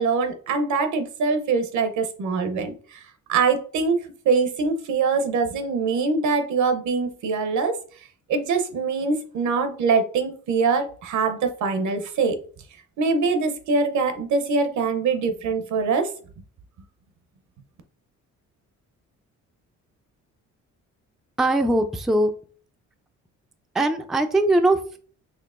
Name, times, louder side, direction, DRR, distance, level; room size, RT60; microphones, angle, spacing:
voice 1, 0.0-3.0 3.3-4.0 4.2-7.8 8.3-12.4 13.0-16.1, right 4 dB, 70° right, 8 dB, 0.7 m, -23 dB
voice 2, 21.4-22.3 23.7-25.0, right 1 dB, ahead, 7 dB, 0.3 m, -21 dB
4.5 x 2.8 x 2.4 m, 0.43 s
cardioid pair, 90°, 30 cm